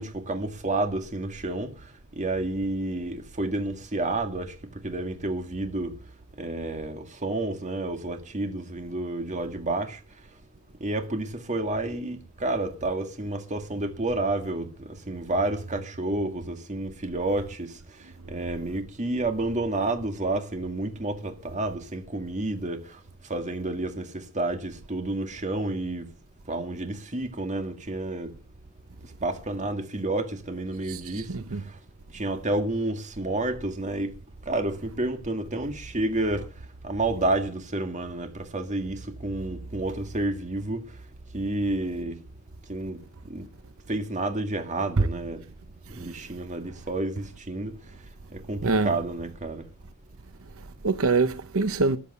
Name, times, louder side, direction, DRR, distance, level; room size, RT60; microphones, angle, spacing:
voice 1, 0.0-1.7 2.2-4.5 4.8-6.0 6.4-10.0 10.8-17.8 18.3-23.0 23.3-26.1 26.5-28.4 29.2-31.3 32.1-34.1 34.5-36.5 36.8-40.9 41.3-42.2 42.7-43.4 43.9-45.4 45.9-47.7 48.3-49.7, right 2 dB, 35° right, 2.1 m, -30 dB
voice 2, 30.8-31.6 45.0-45.1 45.9-46.2 48.6-48.9 50.6-52.0, right 3 dB, 70° right, 0.8 m, -25 dB
14.0 x 10.5 x 6.8 m
head